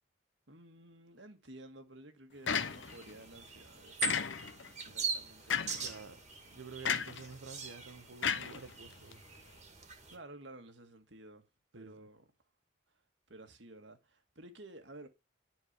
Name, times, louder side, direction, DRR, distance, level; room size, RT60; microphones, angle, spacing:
voice 1, 0.5-4.3 4.6-6.1 9.7-11.5 11.7-12.3 13.3-15.1, right 1 dB, 70° right, 2.0 m, -53 dB
sound 1, 2.5-3.1 4.0-4.7 5.5-5.9 6.8-7.3 8.2-9.1, left 7 dB, 75° left, 1.0 m, -33 dB
sound 2, 2.5-10.2, right 5 dB, 35° right, 2.1 m, -43 dB
voice 2, 5.7-9.2 11.7-12.1, right 4 dB, 85° right, 1.0 m, -50 dB
11.0 x 4.6 x 8.2 m
head